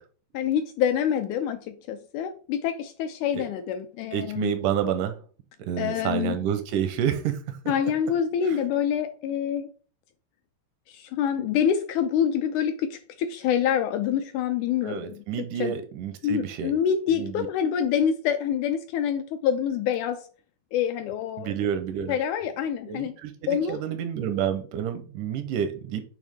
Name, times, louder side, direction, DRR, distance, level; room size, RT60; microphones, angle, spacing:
voice 1, 0.3-4.5 5.8-6.4 7.7-9.7 10.9-15.2 15.6-15.7 16.2-20.3 20.7-21.6 22.1-23.1 23.5-23.8, left 8 dB, 80° left, 1.8 m, -26 dB
voice 2, 4.1-5.2 5.7-7.4 8.5-8.6 14.8-16.7 17.1-17.5 21.4-22.1 22.9-23.3 23.7-26.0, right 9 dB, 80° right, 2.1 m, -29 dB
8.6 x 3.3 x 3.4 m
omnidirectional pair, 3.8 m